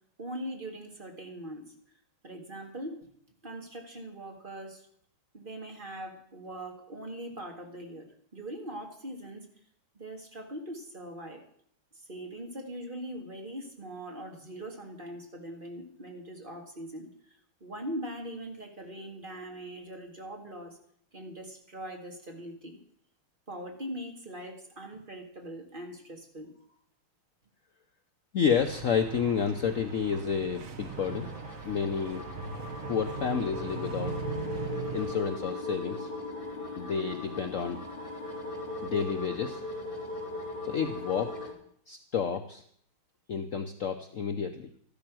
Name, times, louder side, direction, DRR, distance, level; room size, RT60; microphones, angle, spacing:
voice 1, 0.2-1.7 2.2-3.0 3.4-4.9 5.3-8.1 8.3-9.5 9.9-11.4 12.1-20.8 21.1-22.8 23.5-26.5 38.5-38.9, right 1 dB, 25° right, 3 dB, 2.1 m, -41 dB
voice 2, 28.3-31.3 31.6-32.2 32.9-34.2 34.9-36.1 36.8-37.8 38.8-39.6 40.6-41.5 41.9-42.6 43.3-44.7, left 7 dB, 70° left, 7 dB, 0.7 m, -30 dB
sound 1, 28.6-35.2, right 5 dB, 45° right, 1.3 m, -40 dB
sound 2, 30.8-41.5, left 2 dB, 25° left, 3.3 m, -39 dB
13.5 x 12.0 x 6.2 m, 0.64 s
omnidirectional pair, 2.4 m